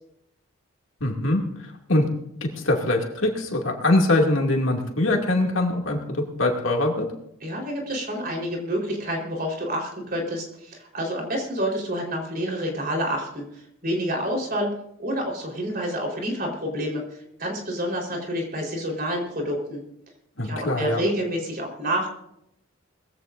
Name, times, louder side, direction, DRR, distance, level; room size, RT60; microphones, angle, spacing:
voice 1, 1.0-2.1 2.4-7.1 20.4-21.0, left 1 dB, 65° left, 0 dB, 2.5 m, -23 dB
voice 2, 7.4-13.5 13.8-14.7 15.0-17.0 17.4-19.8 20.4-22.1, equal, 45° right, 0 dB, 4.2 m, -28 dB
20.5 x 16.0 x 2.6 m, 0.77 s
head